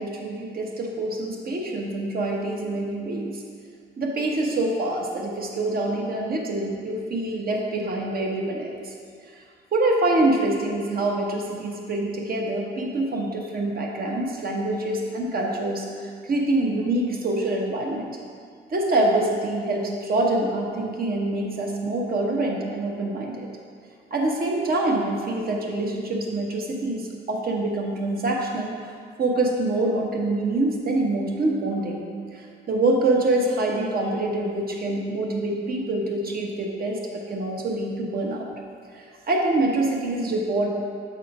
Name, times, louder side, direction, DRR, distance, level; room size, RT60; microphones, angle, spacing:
voice 1, 0.0-3.4 4.0-8.9 9.7-18.2 18.7-23.5 24.1-28.7 29.2-32.0 32.3-38.5 38.9-40.7, right 2 dB, 50° right, -1 dB, 1.2 m, -25 dB
7.1 x 4.3 x 4.9 m, 2.1 s
cardioid pair, 90°, 20 cm